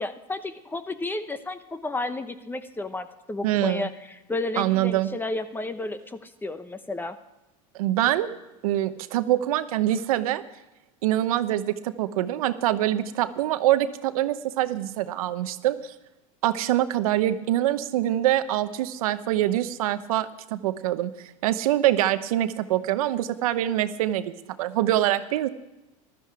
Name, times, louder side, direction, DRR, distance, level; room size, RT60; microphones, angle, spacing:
voice 1, 0.0-7.2, left 2 dB, 10° left, 11 dB, 0.9 m, -32 dB
voice 2, 3.4-3.9 4.6-5.1 7.7-8.3 8.6-10.4 11.0-15.9 16.4-21.1 21.4-25.5, right 13 dB, 85° right, 12 dB, 0.8 m, -24 dB
14.5 x 12.5 x 4.7 m, 1.0 s
supercardioid pair, 120°, 18 cm